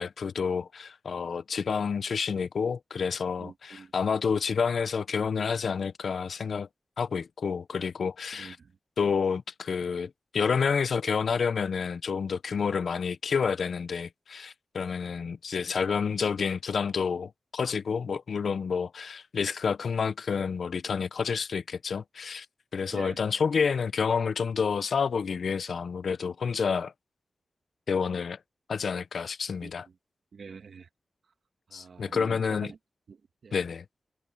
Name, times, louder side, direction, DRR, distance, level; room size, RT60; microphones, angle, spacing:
voice 1, 0.0-6.7 7.0-8.6 9.0-22.5 22.7-26.9 27.9-28.4 28.7-29.9 31.7-32.7 33.5-33.8, left 6 dB, 80° left, 0.6 m, -29 dB
voice 2, 3.4-3.9 8.3-8.7 22.9-23.2 29.6-29.9 30.3-30.9 31.7-32.8 33.1-33.6, right 5 dB, 75° right, 1.5 m, -45 dB
wide cardioid pair, 110°, 0 cm